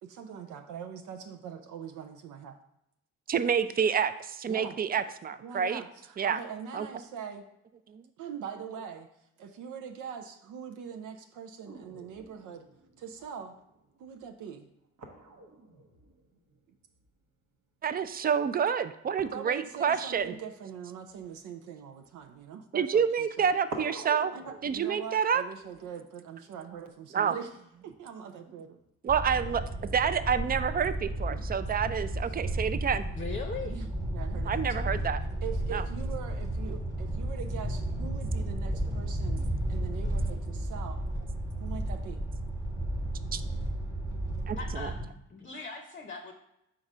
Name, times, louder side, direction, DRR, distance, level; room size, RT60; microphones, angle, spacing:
voice 1, 0.0-2.6 4.5-5.0 5.4-7.5 8.2-9.1 9.4-12.7 13.0-13.6 14.0-14.7 19.2-23.5 24.3-27.5 27.8-28.8 29.5-29.6 31.3-31.4 33.6-35.1 35.4-39.4 39.7-41.0 41.6-42.2, right 7 dB, 80° right, 6 dB, 0.6 m, -42 dB
voice 2, 3.3-5.8 6.2-6.4 6.7-6.9 8.7-8.9 17.8-20.4 22.7-24.3 24.6-25.4 27.1-27.4 29.0-33.0 34.4-35.2 35.7-35.9 43.3-43.4 44.5-44.9, right 7 dB, 30° right, 12 dB, 0.4 m, -28 dB
sound 1, 11.6-17.5 17.8-18.2 19.1-22.4 23.2-23.3 23.7-26.9 27.9-28.9, right 2 dB, 65° right, 1.0 m, -49 dB
sound 2, 29.1-45.1, right 1 dB, 10° right, 1.3 m, -33 dB
voice 3, 33.2-33.7 44.6-45.0 45.3-46.3, left 4 dB, 30° left, 3 dB, 0.7 m, -39 dB
4.7 x 3.9 x 5.4 m, 0.81 s
cardioid pair, 90°, 30 cm